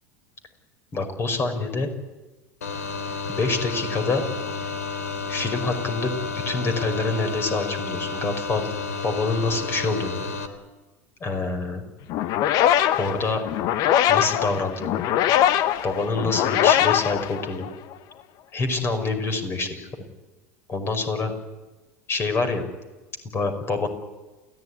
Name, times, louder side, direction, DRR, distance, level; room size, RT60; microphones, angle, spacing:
voice 1, 0.9-1.9 3.3-4.2 5.3-8.7 9.0-10.2 11.2-11.8 13.0-13.4 14.1-15.0 15.8-17.7 18.5-20.0 20.7-21.3 22.1-22.6 23.3-23.9, left 3 dB, 30° left, 7 dB, 5.3 m, -26 dB
sound 1, 2.6-10.5, left 4 dB, 75° left, 2.8 m, -31 dB
sound 2, 12.1-17.9, left 11 dB, 50° left, 1.2 m, -22 dB
28.5 x 16.5 x 9.9 m, 1.2 s
figure-of-eight pair, 80°, 8 cm